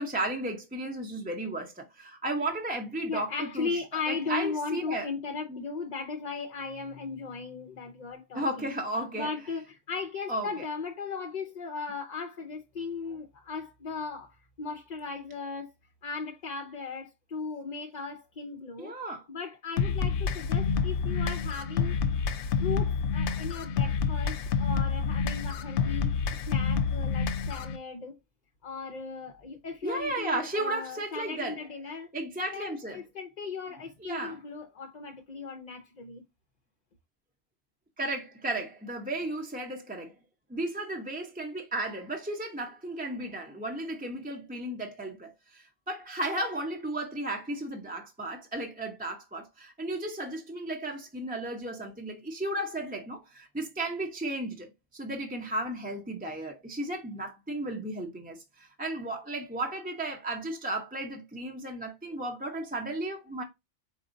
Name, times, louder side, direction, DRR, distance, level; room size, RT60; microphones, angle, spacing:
voice 1, 0.0-3.7 4.1-5.1 5.5-5.7 8.3-9.3 10.3-10.6 18.8-19.3 29.8-31.6 32.1-33.0 34.0-34.4 38.0-40.1 40.5-63.4, right 1 dB, 10° right, 0.5 m, -34 dB
voice 2, 3.1-8.7 9.1-15.7 16.0-19.0 19.3-22.3 22.6-26.1 26.5-28.2 28.6-32.1 32.5-36.2, left 4 dB, 50° left, 0.6 m, -37 dB
sound 1, 19.8-27.8, left 6 dB, 75° left, 0.9 m, -28 dB
4.3 x 4.0 x 2.6 m
omnidirectional pair, 1.3 m